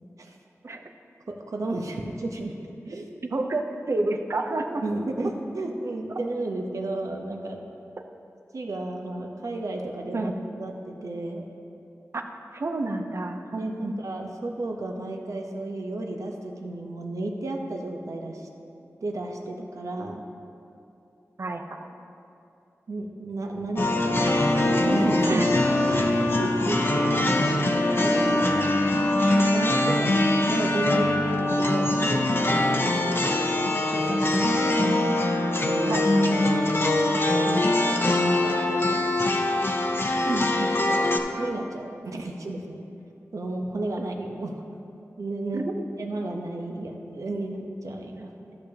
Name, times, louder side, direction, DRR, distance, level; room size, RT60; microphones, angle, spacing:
voice 1, 1.3-2.5 2.8-3.1 4.8-7.6 8.5-10.3 10.6-11.4 13.5-18.5 19.0-20.2 22.9-25.5 25.7-28.7 29.4-30.1 30.5-31.1 31.6-34.9 35.7-36.0 37.5-37.6 38.1-39.1 41.0-41.1 41.4-42.8 43.3-44.6 45.2-45.6 46.0-48.6, right 2 dB, 75° right, 2 dB, 0.9 m, -33 dB
voice 2, 3.3-4.8 10.1-10.3 12.1-12.2 12.5-13.9 21.4-21.8 25.3-25.5 31.1-31.2 34.8-35.0 35.9-36.4 40.3-40.7 45.5-45.8, right 2 dB, 55° right, 4 dB, 0.6 m, -29 dB
sound 1, 23.8-41.2, left 1 dB, 45° left, 0.7 m, -23 dB
14.0 x 6.8 x 2.8 m, 2.7 s
wide cardioid pair, 75°, 6 cm